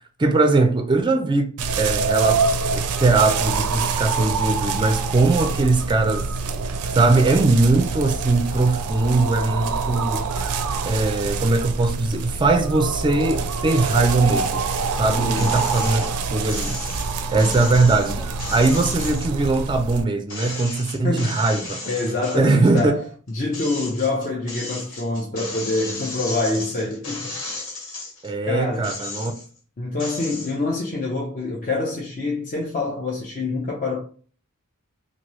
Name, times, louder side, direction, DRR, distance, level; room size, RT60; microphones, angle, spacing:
voice 1, 0.2-6.3 6.9-10.3 10.8-14.6 14.9-16.9 17.3-18.2 18.5-21.8 22.3-22.9 28.2-29.3, right 3 dB, 20° right, 0.4 m, -20 dB
sound 1, 1.6-20.0, right 4 dB, 85° right, 0.4 m, -26 dB
voice 2, 15.2-15.6 17.2-17.8 20.4-20.6 21.0-21.4 21.8-27.3 28.5-28.9 29.8-34.0, left 2 dB, 35° left, 0.6 m, -26 dB
sound 2, 15.3-16.1 16.5-20.0 20.3-22.9 23.3-28.3 28.7-29.6 30.0-30.5, left 3 dB, 60° left, 1.4 m, -34 dB
2.9 x 2.6 x 3.0 m
head